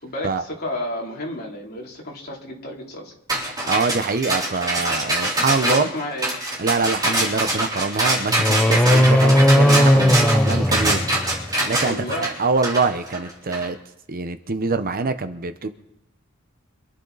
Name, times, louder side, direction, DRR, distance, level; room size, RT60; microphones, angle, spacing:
voice 1, 0.0-3.1 5.6-6.3 11.8-12.3, left 1 dB, 45° left, -2 dB, 3.2 m, -31 dB
sound 1, 3.3-13.7, right 1 dB, 20° right, 3.9 m, -24 dB
voice 2, 3.7-5.9 6.6-11.1 11.7-13.8 14.1-15.7, right 4 dB, 40° right, 10 dB, 0.8 m, -24 dB
sound 2, 8.3-11.6, equal, 5° left, 0.6 m, -17 dB
26.0 x 11.0 x 4.1 m, 0.84 s
head